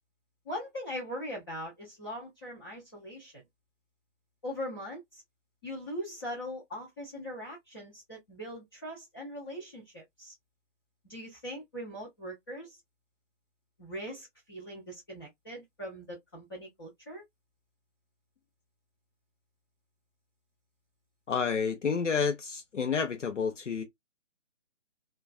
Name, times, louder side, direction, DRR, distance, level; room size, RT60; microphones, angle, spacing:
voice 1, 0.4-3.4 4.4-5.2 5.6-10.3 11.0-12.8 13.8-17.2, equal, 20° left, 0.6 m, -41 dB
voice 2, 21.3-23.8, left 6 dB, 75° left, 0.7 m, -29 dB
2.3 x 2.3 x 2.3 m
figure-of-eight pair, 140°, 36 cm